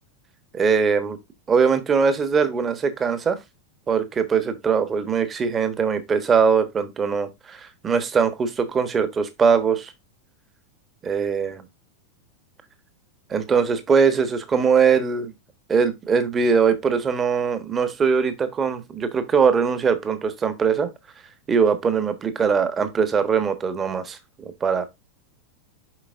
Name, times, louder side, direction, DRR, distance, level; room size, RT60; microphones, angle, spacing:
voice 1, 0.5-1.2 1.5-3.4 3.9-9.9 11.0-11.6 13.3-15.3 15.7-20.9 21.5-24.8, right 6 dB, 20° right, 1.3 m, -21 dB
7.5 x 5.7 x 2.6 m
figure-of-eight pair, 90°, 0 cm